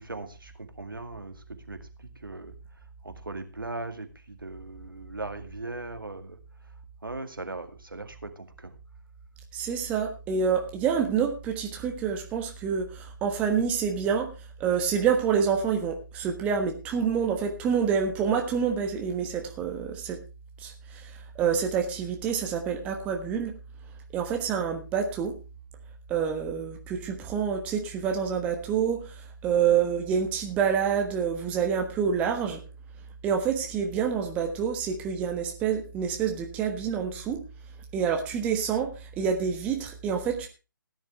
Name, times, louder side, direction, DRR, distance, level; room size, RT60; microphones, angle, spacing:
voice 1, 0.0-1.4 1.7-1.8 2.2-2.5 3.0-6.4 7.0-8.7, right 2 dB, 75° right, 7 dB, 2.2 m, -38 dB
voice 2, 9.5-14.3 14.6-20.2 20.6-23.5 24.1-25.3 26.1-29.1 29.4-32.6 33.2-37.4 37.9-40.5, right 7 dB, 10° right, 3 dB, 1.3 m, -27 dB
16.5 x 10.5 x 3.4 m, 0.30 s
figure-of-eight pair, 145°, 11 cm